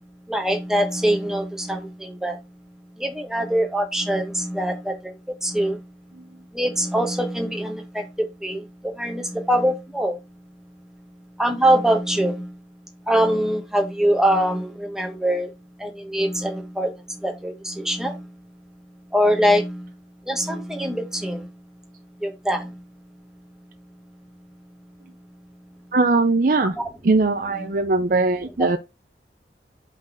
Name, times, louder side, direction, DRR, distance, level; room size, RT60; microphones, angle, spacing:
voice 1, 0.3-2.4 3.0-5.1 5.4-5.8 6.5-8.1 8.4-10.2 11.4-12.5 13.1-15.5 15.8-16.9 17.2-18.2 19.1-19.9 20.3-21.5 22.2-22.7 27.5-27.7 28.6-28.7, equal, 5° right, 1.1 m, -23 dB
voice 2, 25.9-26.8 27.0-28.8, right 3 dB, 50° right, 0.5 m, -20 dB
5.2 x 4.0 x 4.8 m
head